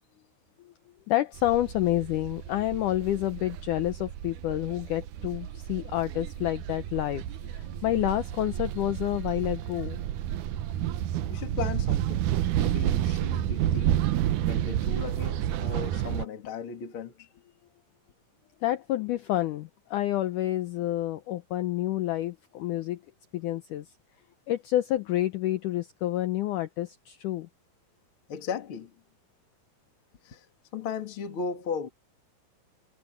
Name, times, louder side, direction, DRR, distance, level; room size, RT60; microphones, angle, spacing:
voice 1, 1.1-10.0 18.6-23.0 23.3-23.9 24.5-27.5, left 14 dB, 90° left, 1.8 m, -29 dB
sound 1, 1.3-16.2, right 12 dB, 75° right, 1.8 m, -30 dB
voice 2, 11.3-12.3 12.6-14.0 14.4-17.3 28.3-29.0 30.2-30.5 30.7-31.9, left 6 dB, 40° left, 2.6 m, -36 dB
omnidirectional pair, 4.6 m